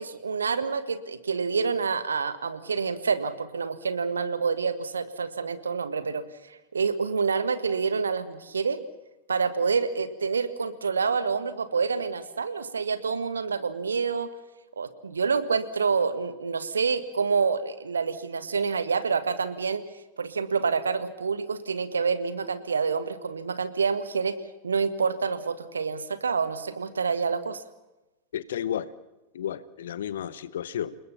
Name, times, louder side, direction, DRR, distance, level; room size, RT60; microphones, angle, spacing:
voice 1, 0.0-8.8 9.3-14.3 14.8-19.8 20.2-24.3 24.6-27.6, right 5 dB, 75° right, 12 dB, 1.7 m, -27 dB
voice 2, 28.3-28.9 29.3-31.0, left 10 dB, 60° left, 17 dB, 1.1 m, -32 dB
29.0 x 20.0 x 5.8 m, 1.1 s
figure-of-eight pair, 90°, 0 cm